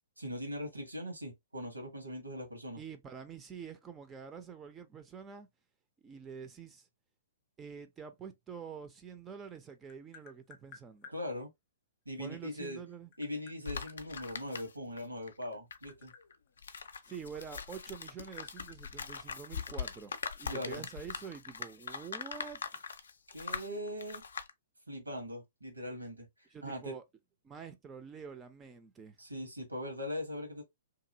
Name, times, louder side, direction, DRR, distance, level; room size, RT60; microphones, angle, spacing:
voice 1, 0.2-2.8 11.1-11.5 12.0-12.8 13.2-16.1 20.5-20.8 23.3-24.2 24.9-26.3 26.6-27.0 29.2-30.6, left 1 dB, 85° right, 1.4 m, -40 dB
voice 2, 2.8-5.5 6.0-6.9 7.6-11.1 12.2-13.1 17.0-22.8 26.5-27.0 27.4-29.2, right 6 dB, 15° right, 0.4 m, -47 dB
Tap, 9.3-11.2 12.5-14.7 15.4-17.6 17.9-19.9, left 6 dB, 35° left, 0.7 m, -55 dB
sound 1, 13.6-15.0 15.3-24.5, left 6 dB, 65° left, 0.4 m, -42 dB
2.9 x 2.6 x 2.6 m
figure-of-eight pair, 115°, 0 cm